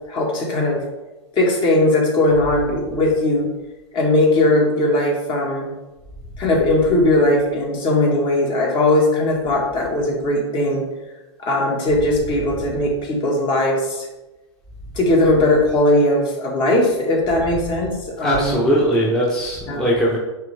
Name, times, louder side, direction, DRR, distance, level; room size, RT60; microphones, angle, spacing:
voice 1, 0.1-0.8 1.3-3.5 3.9-5.7 6.4-10.9 11.4-14.1 15.0-18.6 19.7-19.9, left 1 dB, 30° left, -1 dB, 2.0 m, -19 dB
voice 2, 18.2-20.2, equal, 5° left, -5 dB, 1.2 m, -19 dB
8.9 x 3.3 x 3.6 m, 1.1 s
hypercardioid pair, 115°, 16 cm